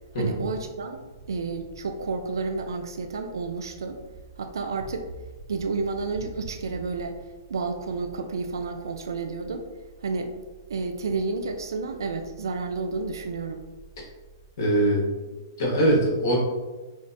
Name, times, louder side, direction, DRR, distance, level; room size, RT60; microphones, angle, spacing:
voice 1, 0.1-4.0 4.4-5.1 5.5-7.2 7.5-9.7 10.0-10.3 10.7-13.6, right 4 dB, 85° right, 6 dB, 0.3 m, -31 dB
voice 2, 14.6-15.1 15.6-16.4, right 1 dB, 60° left, -3 dB, 1.2 m, -22 dB
4.7 x 2.1 x 2.5 m, 1.2 s
hypercardioid pair, 145°, 2 cm